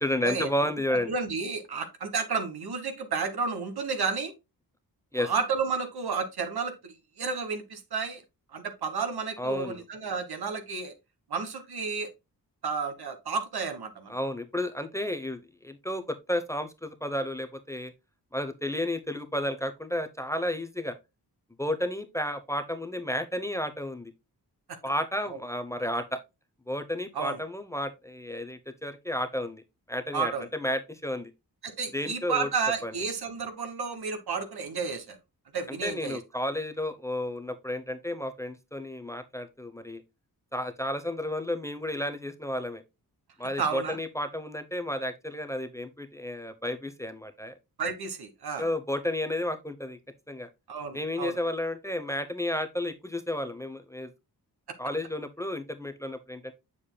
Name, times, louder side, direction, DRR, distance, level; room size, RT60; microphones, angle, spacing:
voice 1, 0.0-1.1 5.1-5.3 9.4-9.8 14.1-17.9 18.3-21.0 21.6-24.1 24.8-26.2 26.7-29.6 29.9-31.3 31.9-32.5 32.8-32.9 35.7-40.0 40.5-42.8 43.4-47.5 48.6-50.0 50.3-50.5 50.9-54.1 54.8-56.5, left 1 dB, 10° left, 0.7 m, -32 dB
voice 2, 1.1-4.3 5.1-8.2 8.5-10.9 11.3-12.1 12.6-14.2 25.3-25.4 27.1-27.4 30.1-30.4 31.6-35.2 35.5-36.2 43.6-44.0 47.8-48.7 50.7-51.4, right 5 dB, 75° right, 1.4 m, -31 dB
7.2 x 6.8 x 2.2 m
wide cardioid pair, 90°, 38 cm